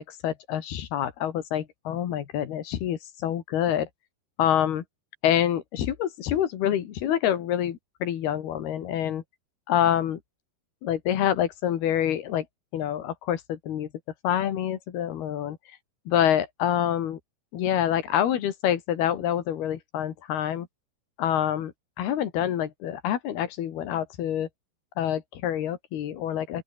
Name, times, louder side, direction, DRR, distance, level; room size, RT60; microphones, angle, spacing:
voice 1, 0.0-3.9 4.4-4.8 5.2-9.2 9.7-10.2 10.8-12.5 12.7-13.9 14.2-15.6 16.1-17.2 17.5-20.7 21.2-24.5 25.0-26.6, left 10 dB, 70° left, 3.9 m, -26 dB
open air
omnidirectional pair, 4.8 m